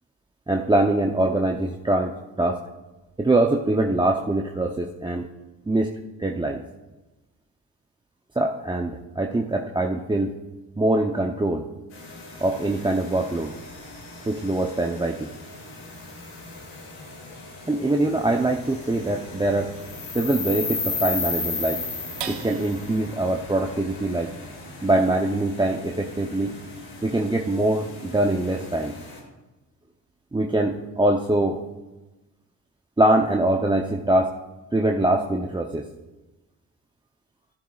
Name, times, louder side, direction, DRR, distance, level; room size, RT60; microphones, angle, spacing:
voice 1, 0.5-2.6 3.2-5.3 5.7-5.9 6.2-6.6 8.4-10.3 10.8-11.7 12.4-13.6 14.3-15.3 17.7-19.7 20.1-21.8 22.3-24.3 24.8-26.6 27.0-28.9 30.3-31.6 33.0-34.4 34.7-35.8, right 2 dB, 10° right, 1 dB, 0.7 m, -23 dB
sound 1, 11.9-29.2, left 3 dB, 85° left, 2.6 m, -36 dB
sound 2, 22.2-28.9 29.4-29.5 29.9-30.4, right 8 dB, 70° right, 1.0 m, -44 dB
11.5 x 11.0 x 2.4 m, 1.1 s
supercardioid pair, 60°, 44 cm